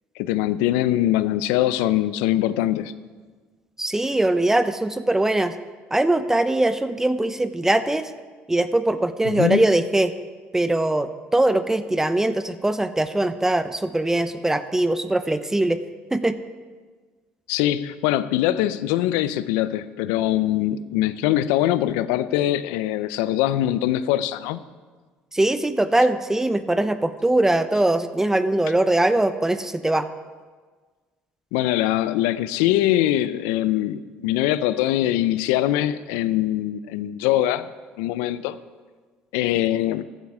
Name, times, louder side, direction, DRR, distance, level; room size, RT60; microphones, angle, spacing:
voice 1, 0.2-2.9 9.2-9.6 17.5-24.6 31.5-37.7 38.0-38.6 39.3-40.0, left 13 dB, 85° left, 15 dB, 0.5 m, -22 dB
voice 2, 3.8-5.5 5.9-8.1 8.5-10.1 10.5-15.8 16.1-16.4 25.3-30.1, right 1 dB, 10° right, 11 dB, 0.7 m, -21 dB
15.0 x 9.2 x 4.8 m, 1.4 s
supercardioid pair, 80°, 4 cm